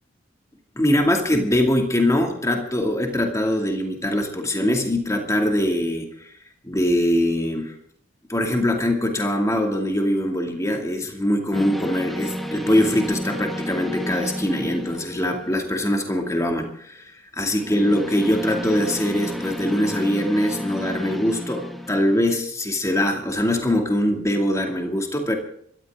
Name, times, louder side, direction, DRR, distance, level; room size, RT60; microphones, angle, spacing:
voice 1, 0.8-6.3 6.6-7.7 8.3-17.1 17.4-25.3, left 1 dB, 15° left, 2 dB, 2.5 m, -22 dB
sound 1, 11.5-16.0 17.5-22.3, equal, ahead, 1.6 m, -32 dB
25.5 x 13.0 x 3.8 m, 0.64 s
head